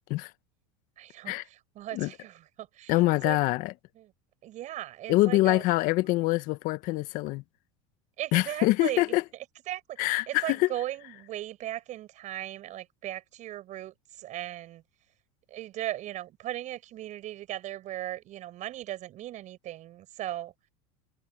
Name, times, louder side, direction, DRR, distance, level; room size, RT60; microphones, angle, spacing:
voice 1, 1.0-3.4 4.0-4.1 4.4-5.6 6.0-6.1 8.2-9.2 9.7-10.0 10.3-14.8 15.5-20.5, right 14 dB, 50° right, 6.2 m, -37 dB
voice 2, 2.9-3.7 5.1-7.4 8.3-9.2 10.0-10.7, left 19 dB, 55° left, 1.4 m, -25 dB
supercardioid pair, 100°, 16 cm